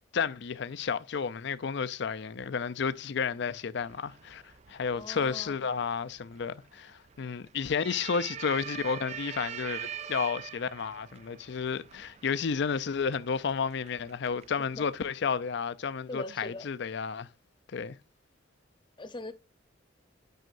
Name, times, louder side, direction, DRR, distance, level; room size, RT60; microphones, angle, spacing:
voice 1, 0.1-4.4 4.7-17.3 17.7-18.0, left 6 dB, 60° left, 0.4 m, -32 dB
sound 1, 3.8-15.1, right 9 dB, 35° right, 0.4 m, -44 dB
voice 2, 4.9-5.6 14.7-14.9 16.1-16.7 19.0-19.3, left 2 dB, 25° left, 0.8 m, -41 dB
9.0 x 5.6 x 2.5 m
head